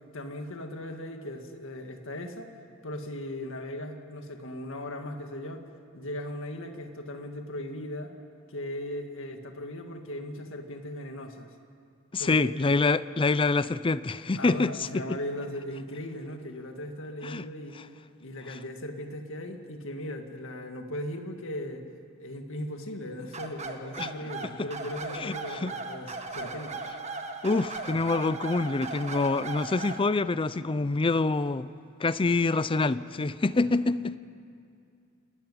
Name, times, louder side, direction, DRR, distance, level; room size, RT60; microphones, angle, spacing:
voice 1, 0.1-2.5 2.8-5.7 5.9-8.1 8.5-11.5 12.2-12.5 14.4-17.8 18.2-21.8 22.2-26.8, left 1 dB, 65° left, 1.9 m, -38 dB
voice 2, 12.1-15.0 17.2-17.4 18.5-18.6 24.0-24.1 25.2-25.7 27.4-31.7 32.0-34.2, left 3 dB, 25° left, 0.5 m, -26 dB
sound 1, 23.3-30.0, right 3 dB, 35° right, 1.6 m, -37 dB
27.5 x 13.0 x 9.7 m
head